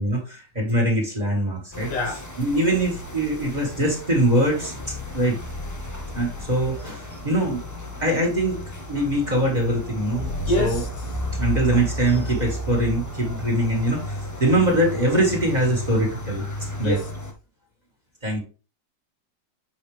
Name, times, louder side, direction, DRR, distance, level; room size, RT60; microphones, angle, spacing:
voice 1, 0.0-4.7 5.1-5.4 6.1-7.6 8.0-10.3 10.6-10.8 11.3-16.4 16.8-17.0 18.2-18.4, right 1 dB, 25° right, 2.0 m, -23 dB
sound 1, 1.7-17.3, left 1 dB, 20° left, 0.5 m, -33 dB
voice 2, 10.5-10.9 16.8-17.1, left 1 dB, 75° left, 2.2 m, -24 dB
7.4 x 4.6 x 3.4 m
omnidirectional pair, 1.9 m